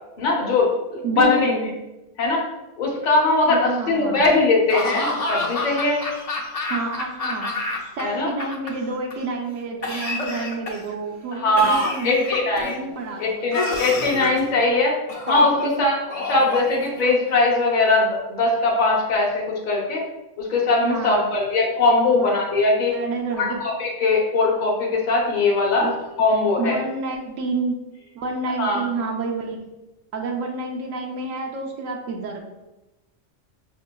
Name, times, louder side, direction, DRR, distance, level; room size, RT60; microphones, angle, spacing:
voice 1, 0.2-1.5 2.2-2.4 2.8-6.0 8.0-8.3 11.3-12.8 13.2-15.0 15.3-20.1 20.4-22.9 23.4-23.5 23.8-25.9 26.2-26.8 28.6-29.1, left 3 dB, 45° left, -2 dB, 0.8 m, -20 dB
voice 2, 1.0-1.7 3.5-4.3 6.7-12.2 12.6-13.5 13.7-14.2 15.3-15.9 20.8-21.3 22.1-22.4 22.9-23.6 25.8-25.9 26.6-27.8 28.1-29.7 30.1-32.4, right 3 dB, 90° right, -1 dB, 1.0 m, -29 dB
Laughter / Cough, 4.7-8.0 8.3-9.1 9.8-10.9 11.6-12.8 13.5-14.4 15.1-15.7 16.1-17.3, left 2 dB, 70° left, 0.3 m, -29 dB
5.2 x 2.8 x 2.2 m, 1.0 s
omnidirectional pair, 1.3 m